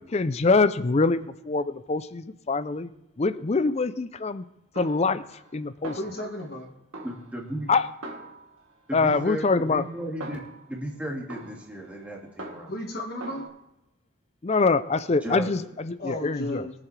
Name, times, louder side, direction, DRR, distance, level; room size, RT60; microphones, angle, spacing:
voice 1, 0.1-2.9 3.2-4.4 4.8-5.2 5.5-6.0 7.7-7.9 8.9-9.8 14.4-16.7, left 3 dB, 30° left, 14 dB, 0.4 m, -24 dB
Snare drum, 4.8-5.6 5.8-6.6 6.9-8.7 9.1-10.8 11.3-12.9 13.2-13.5, right 1 dB, 90° right, 1.8 m, -42 dB
voice 2, 6.0-6.7 12.7-13.5 16.0-16.7, left 1 dB, 50° left, 0 dB, 1.7 m, -33 dB
voice 3, 7.0-7.7 8.9-10.4 10.7-12.7 15.2-15.5, right 1 dB, 5° right, -2 dB, 2.0 m, -34 dB
22.0 x 7.4 x 3.3 m, 0.90 s
head